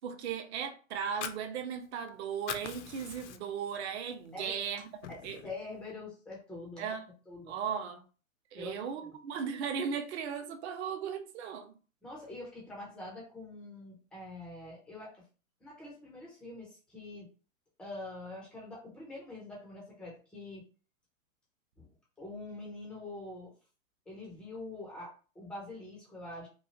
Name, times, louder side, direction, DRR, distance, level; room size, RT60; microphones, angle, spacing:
voice 1, 0.0-4.9 5.2-5.4 6.8-7.1 7.5-8.1 8.5-11.7, right 7 dB, 50° right, 0.7 m, -37 dB
Fire, 0.9-2.1 2.3-3.7 4.1-4.3 4.7-5.6, left 9 dB, 55° left, 0.5 m, -42 dB
voice 2, 5.1-6.9 7.3-7.5 8.5-9.1 12.0-15.2 15.6-17.3 17.8-20.6 21.8-21.9 22.2-23.5 24.1-26.5, left 2 dB, ahead, 0.4 m, -45 dB
3.0 x 2.3 x 2.7 m
hypercardioid pair, 125°, 42 cm